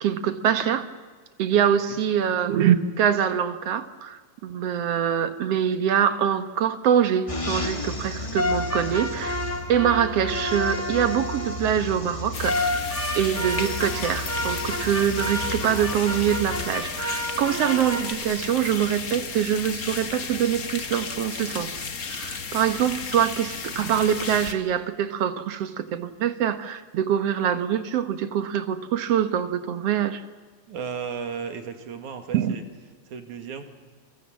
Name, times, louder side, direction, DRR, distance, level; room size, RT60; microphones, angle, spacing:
voice 1, 0.0-0.8 1.4-9.4 9.7-12.9 13.1-30.2 32.3-32.6, right 9 dB, 65° right, 11 dB, 2.0 m, -24 dB
sound 1, 7.3-16.7, left 1 dB, 15° left, 1.5 m, -34 dB
sound 2, 8.3-11.7 12.4-18.1, left 1 dB, 5° right, 1.2 m, -30 dB
sound 3, 12.3-24.5, left 5 dB, 40° left, 1.4 m, -34 dB
voice 2, 30.7-32.6 33.1-33.6, right 6 dB, 90° right, 7 dB, 3.5 m, -34 dB
29.0 x 24.0 x 7.4 m, 1.4 s
omnidirectional pair, 3.3 m